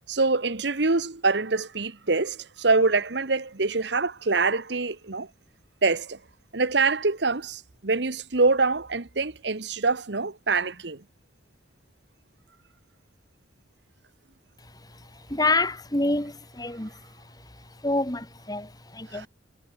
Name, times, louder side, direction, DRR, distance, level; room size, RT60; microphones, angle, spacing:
voice 1, 0.1-5.3 5.8-6.2 6.5-11.0 19.1-19.3, right 3 dB, 65° right, 1.3 m, -25 dB
voice 2, 15.3-16.9 17.8-19.3, left 2 dB, 20° left, 2.4 m, -27 dB
head